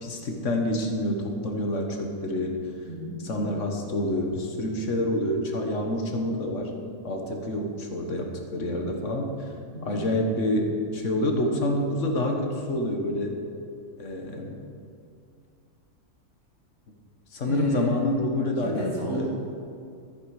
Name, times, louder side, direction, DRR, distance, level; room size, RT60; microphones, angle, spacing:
voice 1, 0.0-2.6 3.2-6.7 7.0-9.3 9.8-13.4 14.0-14.6 17.3-19.3, left 1 dB, 55° left, 2 dB, 1.6 m, -27 dB
voice 2, 2.8-3.5 9.7-10.0 17.4-18.1 18.6-19.3, right 2 dB, 60° right, -6 dB, 3.7 m, -34 dB
13.5 x 9.3 x 4.9 m, 2.4 s
omnidirectional pair, 1.6 m